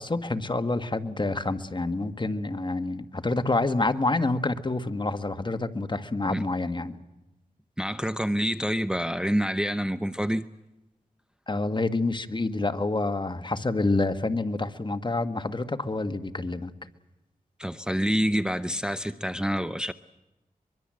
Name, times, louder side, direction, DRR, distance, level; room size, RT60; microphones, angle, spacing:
voice 1, 0.0-7.0 11.5-16.7, left 2 dB, 30° left, 9 dB, 1.7 m, -28 dB
voice 2, 7.8-10.4 17.6-19.9, equal, 5° right, 12 dB, 0.7 m, -27 dB
23.5 x 23.0 x 7.8 m, 0.99 s
cardioid pair, 60°, 15 cm